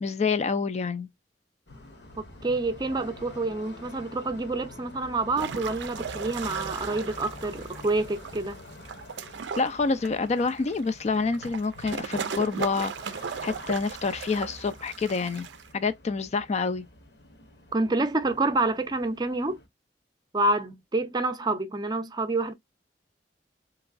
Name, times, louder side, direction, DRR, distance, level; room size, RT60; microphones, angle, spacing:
voice 1, 0.0-1.1 9.6-15.5 15.7-16.8, left 4 dB, 40° left, 0.4 m, -27 dB
sound 1, 1.7-19.7, left 2 dB, 70° left, 1.1 m, -47 dB
voice 2, 2.2-8.6 17.7-19.6 20.3-22.5, right 2 dB, 25° right, 0.5 m, -28 dB
sound 2, 5.3-15.7, right 6 dB, 90° right, 0.4 m, -37 dB
3.5 x 3.0 x 2.4 m
head